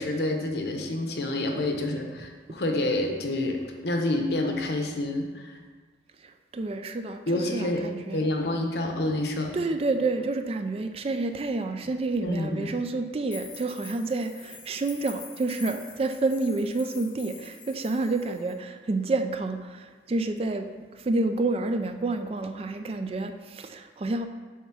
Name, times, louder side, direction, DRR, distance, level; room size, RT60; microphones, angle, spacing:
voice 1, 0.0-5.6 7.3-7.8 8.1-9.6 12.2-12.7, left 1 dB, 70° left, 3 dB, 0.9 m, -28 dB
voice 2, 6.5-8.3 9.5-24.3, right 3 dB, 35° right, 7 dB, 0.4 m, -29 dB
sound 1, 9.9-10.0 10.3-10.4 13.3-18.5, left 5 dB, 25° left, 0.8 m, -46 dB
7.2 x 3.5 x 5.9 m, 1.4 s
head